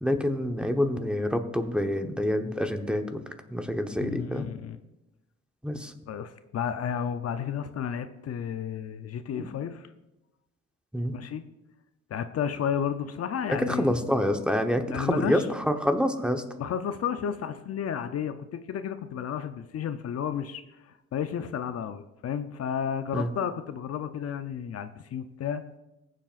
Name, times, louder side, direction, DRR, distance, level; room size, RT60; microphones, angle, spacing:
voice 1, 0.0-3.2 3.5-4.5 5.6-5.9 9.4-9.5 10.9-11.1 13.5-16.4 23.1-23.3, equal, 5° right, 5 dB, 1.0 m, -27 dB
voice 2, 4.0-4.8 6.1-9.9 11.1-11.4 12.1-13.9 14.9-15.4 16.6-25.6, left 8 dB, 55° left, 10 dB, 0.6 m, -32 dB
19.0 x 7.5 x 2.5 m, 0.96 s
cardioid pair, 90°, 30 cm